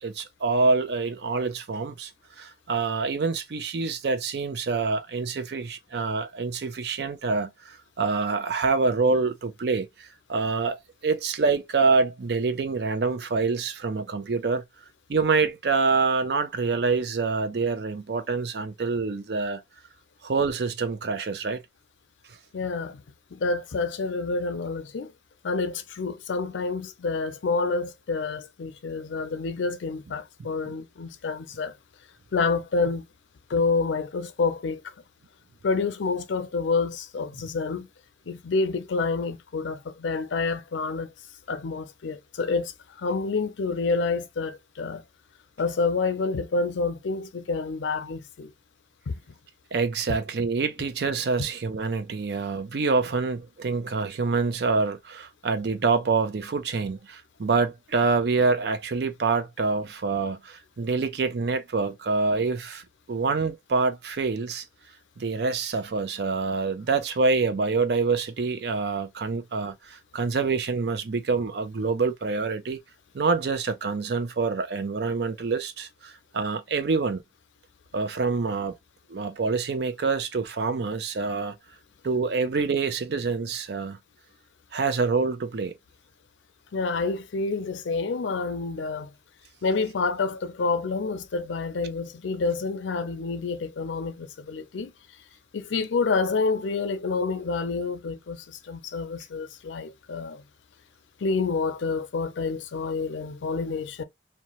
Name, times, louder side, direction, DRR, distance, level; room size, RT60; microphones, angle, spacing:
voice 1, 0.0-2.1 2.4-10.8 11.0-14.6 15.1-19.6 20.2-21.6 30.6-30.7 49.7-64.6 65.2-72.8 73.1-77.2 77.9-78.8 79.1-81.6 82.0-84.0 84.7-85.7, right 4 dB, 60° right, 0.5 m, -26 dB
voice 2, 22.5-23.0 23.3-25.1 25.4-31.7 32.3-33.1 33.5-34.9 35.6-37.9 38.3-41.1 41.5-45.0 45.6-48.5 49.1-49.2 86.7-89.1 89.6-94.9 95.5-100.4 101.2-104.0, left 4 dB, 85° left, 0.5 m, -28 dB
2.8 x 2.2 x 3.0 m
head